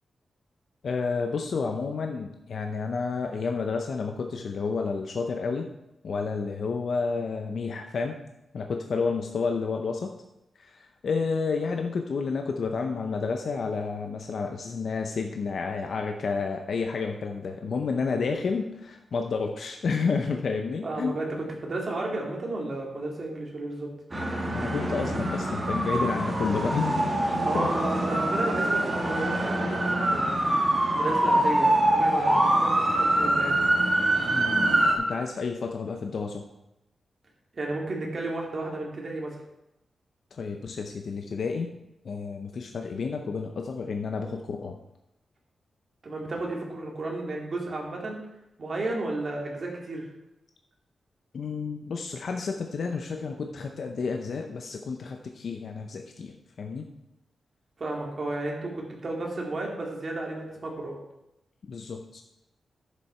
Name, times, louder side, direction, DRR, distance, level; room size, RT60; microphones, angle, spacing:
voice 1, 0.8-5.7 6.0-8.2 8.5-10.1 10.6-21.2 24.5-27.0 27.5-27.7 34.3-36.5 40.3-41.7 42.0-44.8 51.3-56.9 61.7-62.2, left 4 dB, 55° left, 4 dB, 0.7 m, -30 dB
voice 2, 20.8-23.9 27.4-30.6 30.9-33.6 37.5-39.3 46.0-48.2 48.6-50.1 57.8-61.0, right 2 dB, 35° right, -1 dB, 2.3 m, -33 dB
sound 1, 24.1-35.0, right 1 dB, 20° right, 1.6 m, -24 dB
10.5 x 7.3 x 4.4 m, 0.89 s
wide cardioid pair, 180°, 0 cm